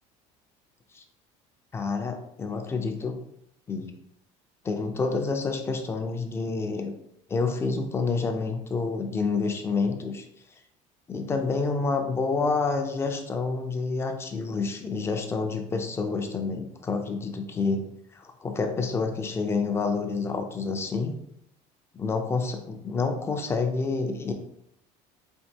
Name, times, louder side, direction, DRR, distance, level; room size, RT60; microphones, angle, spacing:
voice 1, 1.7-3.2 3.7-3.9 4.6-6.9 7.3-10.3 11.1-21.2 21.9-24.3, left 4 dB, 15° left, 5 dB, 0.4 m, -28 dB
4.4 x 2.5 x 2.7 m, 0.75 s
cardioid pair, 150°, 14 cm